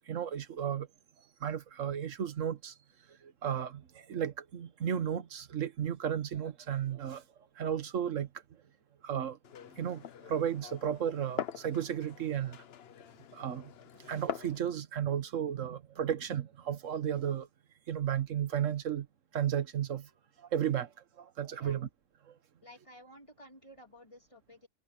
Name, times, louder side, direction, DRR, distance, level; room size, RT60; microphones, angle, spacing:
voice 1, 0.1-0.9 1.4-2.7 3.2-7.2 7.6-8.3 9.0-9.4 9.8-12.6 13.3-13.7 14.0-17.5 17.9-19.1 19.3-20.1 20.4-20.9 21.2-21.9 22.3-22.4, right 9 dB, 85° right, 1.5 m, -34 dB
Glass, 9.4-14.6, left 9 dB, 60° left, 0.9 m, -43 dB
voice 2, 22.6-24.7, equal, 25° left, 2.1 m, -54 dB
omnidirectional pair, 1.3 m